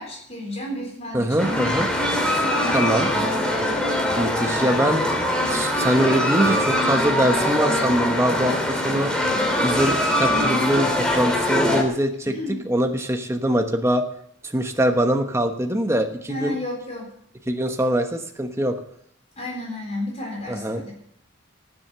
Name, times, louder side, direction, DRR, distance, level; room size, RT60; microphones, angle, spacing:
voice 1, 0.0-1.6 2.3-3.3 11.4-11.6 12.3-12.7 16.3-17.1 19.4-20.9, left 1 dB, 35° left, -1 dB, 3.9 m, -32 dB
voice 2, 1.1-1.9 2.7-3.1 4.2-5.0 5.5-9.1 9.6-12.3 12.6-14.0 14.5-16.6 17.5-18.8 20.5-20.8, right 1 dB, 15° right, 5 dB, 1.1 m, -23 dB
sound 1, 1.4-11.8, left 1 dB, 5° left, 2.7 m, -22 dB
18.0 x 7.8 x 6.8 m, 0.68 s
head